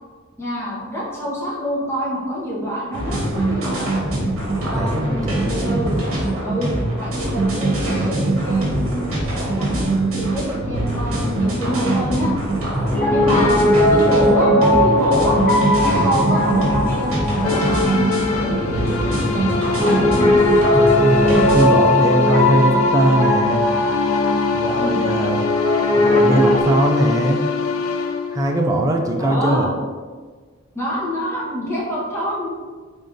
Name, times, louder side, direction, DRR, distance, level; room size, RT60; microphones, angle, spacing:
voice 1, 0.4-3.9 4.6-6.0 6.4-9.0 9.3-12.3 13.1-13.5 13.9-15.4 15.8-20.4 24.8-25.0 29.2-29.7 30.7-32.5, equal, 15° left, -8 dB, 1.2 m, -26 dB
sound 1, 2.9-21.7, right 1 dB, 75° right, 1.2 m, -22 dB
voice 2, 4.7-5.5 21.0-23.7 24.5-25.5 26.0-27.5 28.3-29.7, right 1 dB, 15° right, 1 dB, 0.3 m, -20 dB
Piano, 12.9-26.6, left 1 dB, 40° left, 0.9 m, -19 dB
sound 2, 17.4-29.3, left 5 dB, 80° left, 0.4 m, -24 dB
3.9 x 3.5 x 2.6 m, 1.5 s
head